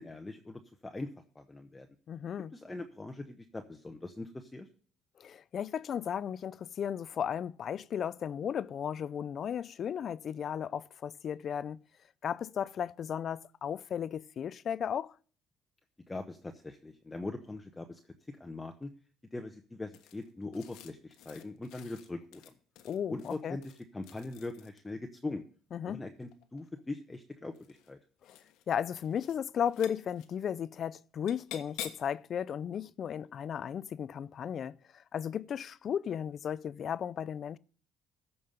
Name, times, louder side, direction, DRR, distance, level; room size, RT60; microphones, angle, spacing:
voice 1, 0.0-1.9 2.5-4.7 16.1-18.0 18.3-18.9 19.3-22.5 23.1-25.4 25.8-28.0, left 2 dB, 10° left, 1.0 m, -41 dB
voice 2, 2.1-2.5 5.2-11.8 12.2-15.1 22.8-23.6 25.7-26.0 28.7-34.8 35.1-37.6, left 8 dB, 45° left, 0.5 m, -35 dB
sound 1, 19.9-24.9 26.2-26.8 27.5-27.9 28.2-28.6 28.9-29.4 29.6-30.3 31.3-32.2, left 11 dB, 80° left, 1.3 m, -49 dB
14.5 x 5.5 x 6.6 m
cardioid pair, 125°, 0 cm